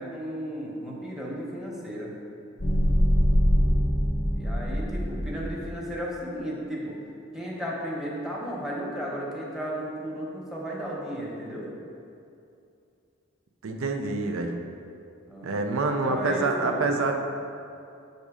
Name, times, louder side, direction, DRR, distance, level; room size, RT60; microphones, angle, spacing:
voice 1, 0.0-2.1 4.3-7.0 7.3-11.7 15.3-17.0, equal, ahead, -4 dB, 0.9 m, -34 dB
sound 1, 2.6-5.7, equal, 30° left, 0.5 m, -23 dB
voice 2, 13.6-14.6 15.4-17.1, right 3 dB, 85° right, 4 dB, 0.5 m, -26 dB
7.3 x 2.7 x 4.8 m, 2.6 s
head